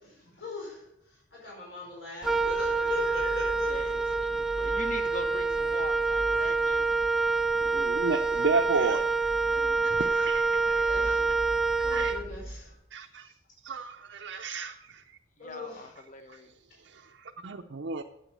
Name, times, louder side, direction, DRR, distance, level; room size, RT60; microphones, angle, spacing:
voice 1, 0.1-0.8 1.3-3.8 6.4-6.7 8.0-8.4 9.5-9.7 10.5-11.2 11.8-12.7 15.4-15.9, left 4 dB, 60° left, -4 dB, 4.8 m, -40 dB
Wind instrument woodwind instrument, 2.2-12.7, right 4 dB, 5° right, 0.4 m, -27 dB
voice 2, 3.7-6.9 15.4-16.5, left 2 dB, 40° left, 7 dB, 1.1 m, -42 dB
voice 3, 7.6-9.3 10.0-11.2 11.9-12.2 12.9-13.3 13.6-15.2 16.9-18.0, right 4 dB, 65° right, 3 dB, 0.6 m, -33 dB
9.2 x 8.4 x 6.5 m, 0.81 s
head